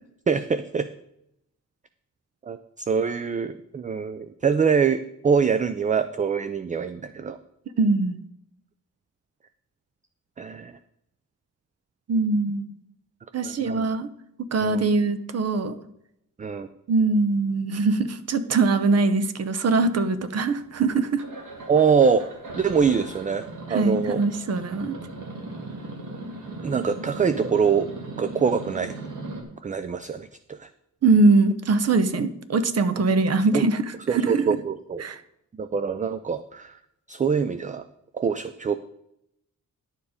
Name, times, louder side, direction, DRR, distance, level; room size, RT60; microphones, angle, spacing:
voice 1, 0.3-0.9 2.4-7.4 10.4-10.7 13.4-13.8 14.6-14.8 16.4-16.7 21.7-22.3 22.5-24.2 26.6-27.9 28.2-28.9 29.6-30.7 33.5-33.7 34.1-35.0 35.6-36.8 37.1-37.9 38.1-38.8, right 6 dB, 25° right, 11 dB, 0.4 m, -24 dB
voice 2, 7.8-8.2 12.1-12.7 13.3-14.1 14.5-15.8 16.9-21.2 23.7-25.0 31.0-34.4 35.0-35.2, right 3 dB, 50° right, 12 dB, 0.8 m, -22 dB
sound 1, 20.3-20.8 21.2-29.4, right 2 dB, 70° right, 2.0 m, -38 dB
11.0 x 7.2 x 5.0 m, 0.79 s
wide cardioid pair, 130°, 32 cm